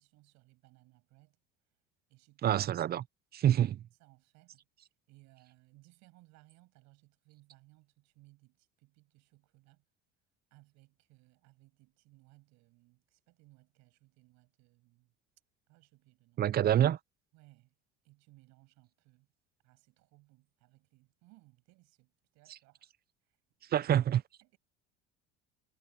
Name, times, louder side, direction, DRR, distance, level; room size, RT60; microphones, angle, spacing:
voice 1, 0.0-1.4 2.1-2.6 4.0-4.6 5.1-9.8 10.5-15.1 15.7-16.4 17.3-17.7 18.0-19.3 19.6-22.9 23.7-23.9 24.4-24.6, right 22 dB, 70° right, 7.2 m, -63 dB
voice 2, 2.4-3.0 3.3-3.8 16.4-17.0 22.5-22.6 23.7-24.2, right 11 dB, 35° right, 0.5 m, -27 dB
supercardioid pair, 95°, 29 cm